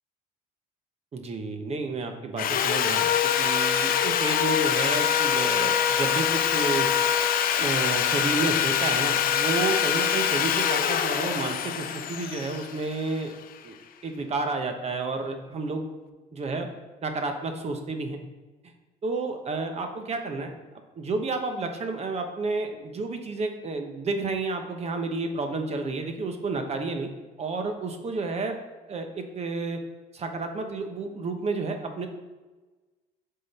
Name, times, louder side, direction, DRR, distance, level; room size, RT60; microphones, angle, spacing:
voice 1, 1.1-3.1 3.4-6.9 7.6-13.3 13.6-13.8 14.0-15.8 16.3-16.7 17.0-18.2 19.0-20.5 21.0-27.1 27.4-28.6 28.9-29.8 30.1-32.1, right 3 dB, 40° right, 5 dB, 1.0 m, -30 dB
Sawing, 2.4-13.4, left 9 dB, 60° left, 0.6 m, -24 dB
10.0 x 3.8 x 4.1 m, 1.2 s
cardioid pair, 110°, 17 cm